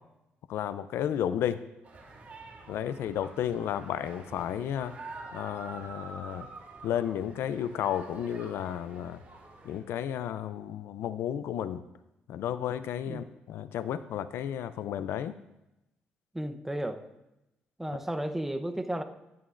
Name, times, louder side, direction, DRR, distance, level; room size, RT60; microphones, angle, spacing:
voice 1, 0.5-1.6 2.7-4.9 5.3-6.5 6.8-9.2 9.6-11.8 12.3-15.3, left 10 dB, 80° left, 14 dB, 0.4 m, -32 dB
sound 1, 1.8-9.8, right 3 dB, 40° right, 2.8 m, -47 dB
voice 2, 16.3-17.0 17.8-19.0, right 1 dB, 10° right, 8 dB, 0.8 m, -33 dB
12.5 x 10.5 x 2.5 m, 0.92 s
cardioid pair, 105°, 4 cm